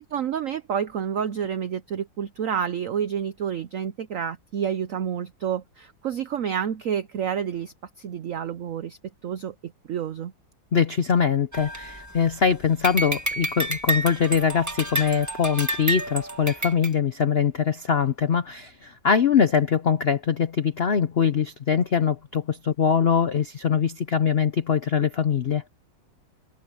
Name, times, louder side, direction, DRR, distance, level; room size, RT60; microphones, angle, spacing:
voice 1, 0.0-10.3, right 8 dB, 65° right, 0.8 m, -29 dB
voice 2, 10.7-25.6, left 7 dB, 75° left, 0.5 m, -23 dB
sound 1, 11.5-12.4 12.8-16.9, right 1 dB, 10° right, 1.0 m, -29 dB
omnidirectional pair, 2.1 m